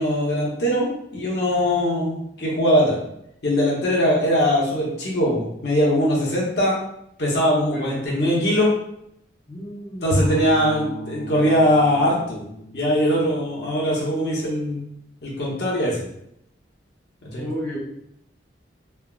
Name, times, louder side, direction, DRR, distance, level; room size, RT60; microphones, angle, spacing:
voice 1, 0.0-3.0 3.4-6.8 7.2-8.7 10.0-12.4 12.7-14.8 15.2-16.0 17.2-17.5, equal, 55° left, -4 dB, 0.8 m, -21 dB
voice 2, 7.7-8.4 9.5-10.3 17.4-17.8, equal, 15° left, -9 dB, 0.4 m, -33 dB
Bowed string instrument, 10.1-14.3, left 1 dB, 85° left, 0.4 m, -32 dB
3.3 x 2.0 x 2.3 m, 0.77 s
head